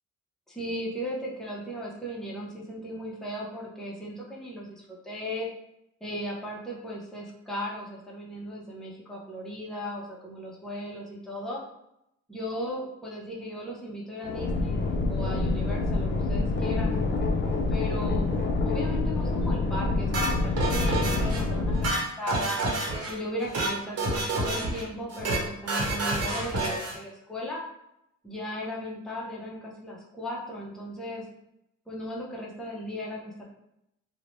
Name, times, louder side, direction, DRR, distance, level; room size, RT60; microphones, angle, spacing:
voice 1, 0.5-5.5 6.0-11.6 12.3-14.8 15.1-17.0 17.7-18.3 18.6-22.6 23.1-27.6 28.2-31.2 31.9-33.4, equal, ahead, -5 dB, 0.6 m, -36 dB
sound 1, 14.2-21.9, left 3 dB, 40° left, 0.5 m, -27 dB
sound 2, 20.1-21.4 21.7-23.1 23.4-23.7 24.0-24.8 25.1-25.4 25.7-27.0, right 2 dB, 55° right, 1.0 m, -28 dB
2.6 x 2.1 x 3.1 m, 0.82 s
cardioid pair, 90°, 30 cm